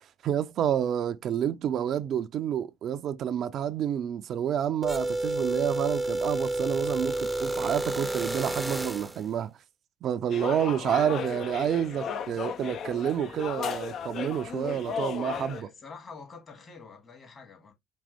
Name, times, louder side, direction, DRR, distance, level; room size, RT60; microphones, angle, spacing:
voice 1, 0.2-9.5 10.0-15.6, right 9 dB, 60° right, 0.5 m, -29 dB
sound 1, 4.8-9.2, right 2 dB, 5° right, 0.6 m, -30 dB
sound 2, 10.3-15.6, left 7 dB, 60° left, 0.6 m, -35 dB
voice 2, 15.3-17.7, left 4 dB, 40° left, 2.2 m, -47 dB
5.2 x 2.9 x 3.4 m
hypercardioid pair, 60°, 0 cm